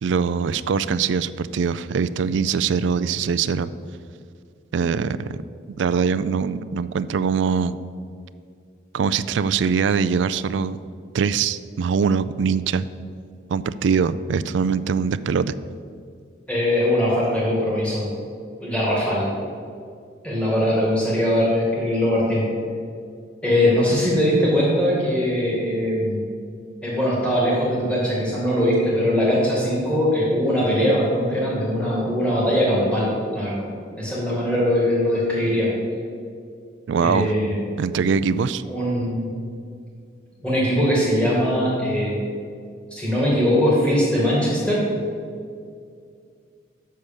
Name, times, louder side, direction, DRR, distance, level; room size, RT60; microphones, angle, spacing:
voice 1, 0.0-3.7 4.7-5.4 5.7-7.8 8.9-10.8 11.1-12.9 13.5-15.5 36.9-37.3 37.8-38.6, right 6 dB, 75° right, 14 dB, 0.3 m, -22 dB
voice 2, 16.5-18.1 18.6-19.2 20.2-22.4 23.4-26.2 26.8-33.7 34.0-35.7 37.0-37.6 38.6-39.3 40.4-42.2 42.9-44.8, equal, 5° left, -6 dB, 2.2 m, -21 dB
6.7 x 6.4 x 7.2 m, 2.3 s
head